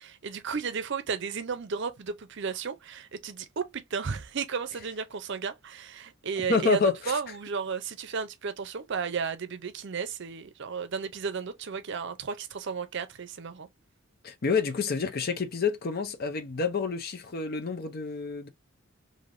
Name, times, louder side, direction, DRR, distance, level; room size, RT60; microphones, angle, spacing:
voice 1, 0.0-13.7, right 5 dB, 55° right, 0.5 m, -34 dB
voice 2, 6.5-7.2 14.2-18.5, left 5 dB, 45° left, 0.5 m, -28 dB
3.3 x 2.6 x 2.5 m
head